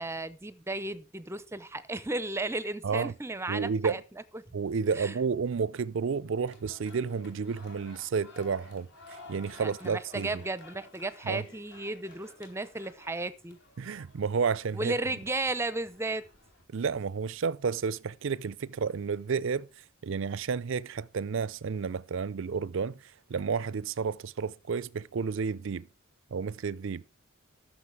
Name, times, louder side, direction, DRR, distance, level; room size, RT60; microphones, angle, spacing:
voice 1, 0.0-4.0 4.3-4.4 5.0-5.2 9.6-13.6 14.7-16.2, right 2 dB, 10° right, 0.6 m, -34 dB
voice 2, 2.8-3.1 3.5-4.0 4.5-10.3 11.2-11.4 13.8-14.9 16.7-19.7 20.0-23.0 23.3-25.9 26.3-27.0, right 5 dB, 65° right, 0.4 m, -31 dB
sound 1, 6.5-16.6, left 2 dB, 55° left, 3.0 m, -53 dB
13.5 x 6.3 x 4.7 m
head